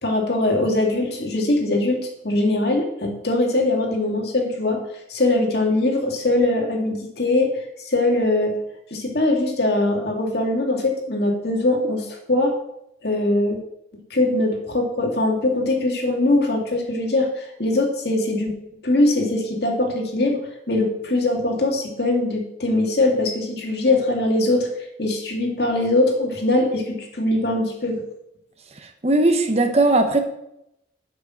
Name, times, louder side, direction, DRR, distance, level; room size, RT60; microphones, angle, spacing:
voice 1, 0.0-2.0 2.2-4.8 5.1-7.5 7.8-8.6 8.9-12.5 13.0-13.6 14.1-18.5 18.8-20.4 20.7-24.7 25.0-28.0, left 2 dB, 60° left, 1 dB, 2.3 m, -21 dB
voice 2, 29.0-30.2, right 2 dB, 35° right, 6 dB, 1.0 m, -18 dB
8.0 x 6.1 x 7.8 m, 0.82 s
head